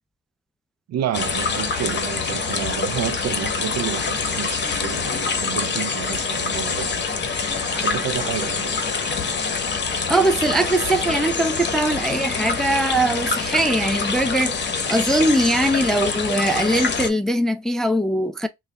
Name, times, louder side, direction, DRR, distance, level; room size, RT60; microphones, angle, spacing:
voice 1, 0.9-7.0 7.7-8.8, right 10 dB, 60° right, 0.5 m, -30 dB
sound 1, 1.1-17.1, left 5 dB, 35° left, 0.9 m, -25 dB
voice 2, 10.1-18.5, right 1 dB, ahead, 0.3 m, -21 dB
3.3 x 2.3 x 3.9 m
cardioid pair, 90°, 30 cm